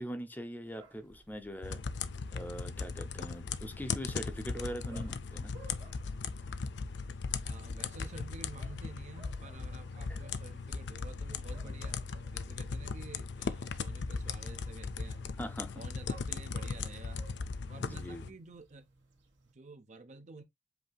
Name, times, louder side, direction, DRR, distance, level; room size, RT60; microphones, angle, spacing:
voice 1, 0.0-1.8 2.3-5.5 10.1-10.2 15.4-15.8 17.8-18.3, equal, 10° left, 0.7 m, -42 dB
sound 1, 0.7-19.5, right 1 dB, 90° right, 2.0 m, -59 dB
sound 2, 1.6-18.3, left 5 dB, 65° left, 0.5 m, -38 dB
voice 2, 7.4-12.0 12.3-15.3 15.8-17.3 17.7-18.9 19.5-20.4, right 3 dB, 40° right, 0.6 m, -50 dB
7.9 x 2.7 x 2.2 m
head